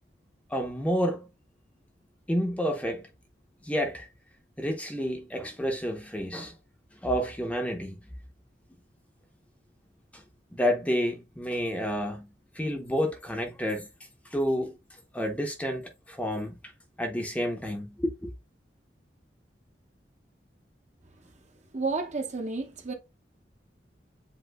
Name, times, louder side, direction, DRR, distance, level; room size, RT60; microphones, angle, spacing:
voice 1, 0.5-1.3 2.3-3.1 3.6-4.1 4.6-6.6 7.0-8.0 10.1-10.2 10.5-12.3 12.5-13.9 14.2-14.8 15.1-16.6 17.0-18.3, equal, 10° left, 0.8 m, -29 dB
voice 2, 21.7-22.9, right 3 dB, 40° right, 1.1 m, -31 dB
7.8 x 2.7 x 2.3 m
head